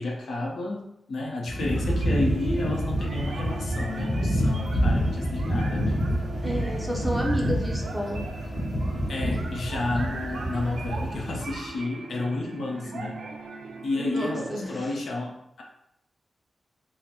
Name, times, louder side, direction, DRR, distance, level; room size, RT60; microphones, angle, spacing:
voice 1, 0.0-6.0 9.1-13.2 13.8-15.6, left 2 dB, 65° left, -1 dB, 0.7 m, -31 dB
sound 1, 1.5-11.6, equal, 25° left, 1.2 m, -28 dB
sound 2, 1.6-14.7, right 4 dB, 75° right, 0.5 m, -40 dB
voice 2, 6.4-8.2 14.0-14.9, equal, ahead, -2 dB, 0.6 m, -31 dB
3.7 x 2.1 x 4.3 m, 0.79 s
wide cardioid pair, 165°, 0 cm